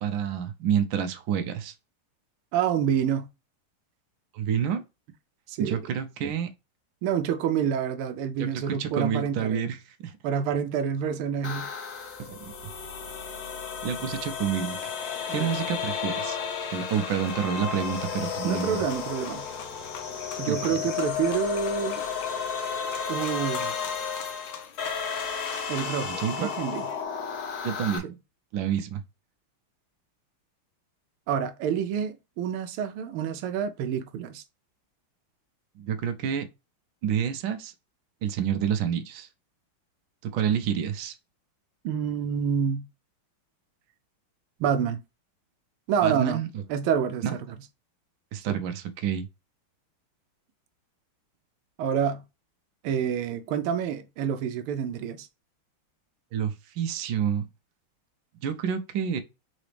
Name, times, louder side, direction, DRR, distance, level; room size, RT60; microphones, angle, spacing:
voice 1, 0.0-1.7 4.3-4.8 5.6-6.5 8.4-10.1 12.2-12.5 13.8-14.9 15.3-16.4 16.7-18.8 20.5-20.6 26.0-26.5 27.6-28.1 28.5-29.0 35.8-36.5 37.0-37.7 38.2-39.3 40.3-41.1 46.0-46.6 47.2-47.3 48.3-49.3 56.3-57.4 58.4-59.2, right 8 dB, 70° right, 1.4 m, -28 dB
voice 2, 2.5-3.3 5.5-5.7 7.0-9.6 10.2-11.7 15.3-15.5 18.4-19.4 20.4-22.1 23.1-23.8 25.7-26.9 28.0-28.2 31.3-34.4 41.8-42.9 44.6-45.0 45.9-47.5 48.5-48.6 51.8-52.2 52.8-55.3, right 8 dB, 90° right, 1.5 m, -28 dB
sound 1, 11.4-28.0, left 6 dB, 55° left, 1.2 m, -33 dB
sound 2, 14.7-27.0, left 8 dB, 75° left, 1.5 m, -44 dB
4.0 x 4.0 x 3.2 m
omnidirectional pair, 2.3 m